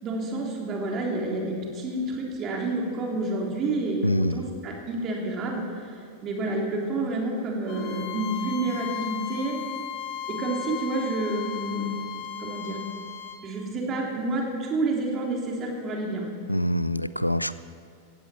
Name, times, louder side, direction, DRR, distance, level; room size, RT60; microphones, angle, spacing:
voice 1, 0.0-5.9 6.2-9.6 10.3-12.1 12.4-12.8 13.4-16.2, right 2 dB, 30° right, -1 dB, 3.4 m, -29 dB
voice 2, 4.0-4.4 16.5-17.5, equal, 90° left, 15 dB, 0.5 m, -25 dB
Bowed string instrument, 7.7-13.4, left 9 dB, 40° left, 1.4 m, -36 dB
16.5 x 16.5 x 4.5 m, 2.4 s
figure-of-eight pair, 90°, 0 cm